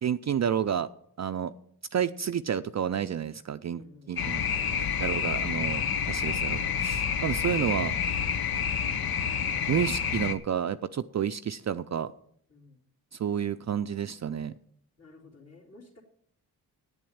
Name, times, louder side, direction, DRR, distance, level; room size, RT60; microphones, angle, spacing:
voice 1, 0.0-0.9 1.2-1.5 1.9-4.4 5.0-7.9 9.7-12.1 13.1-14.5, right 8 dB, 45° right, 11 dB, 0.5 m, -30 dB
voice 2, 3.7-5.1 12.5-12.8 15.0-16.0, left 3 dB, 40° left, -4 dB, 2.9 m, -54 dB
sound 1, 4.2-10.3, left 7 dB, 60° left, 1.0 m, -29 dB
8.9 x 7.6 x 8.7 m, 0.66 s
cardioid pair, 55°, 40 cm